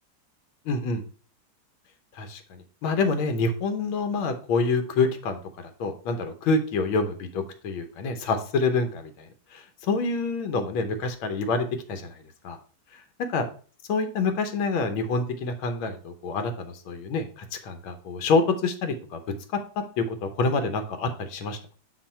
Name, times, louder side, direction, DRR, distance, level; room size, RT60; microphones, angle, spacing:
voice 1, 0.7-1.0 2.2-5.4 5.8-9.3 9.5-12.1 12.4-12.6 13.3-13.5 13.9-19.2 20.0-21.8, left 3 dB, 90° left, 7 dB, 1.7 m, -27 dB
6.3 x 4.4 x 4.3 m, 0.39 s
omnidirectional pair, 2.2 m